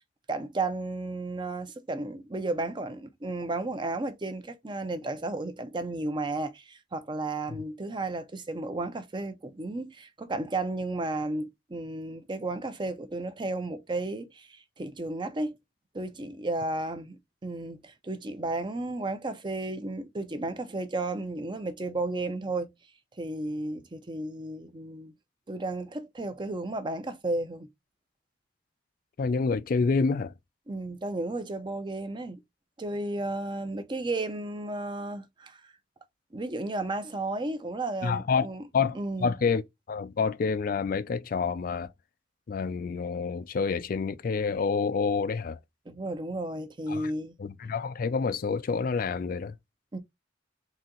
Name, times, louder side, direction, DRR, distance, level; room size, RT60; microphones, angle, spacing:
voice 1, 0.3-15.5 15.9-22.7 23.2-25.1 25.5-27.7 30.7-32.4 32.8-35.7 36.3-38.7 38.9-39.3 45.9-47.3 49.9-50.0, right 2 dB, 25° right, 0.6 m, -33 dB
voice 2, 29.2-30.3 38.0-38.5 38.7-39.6 39.9-41.9 42.5-45.6 46.9-47.1 47.4-49.6, left 5 dB, 50° left, 0.4 m, -28 dB
4.1 x 2.8 x 3.7 m
head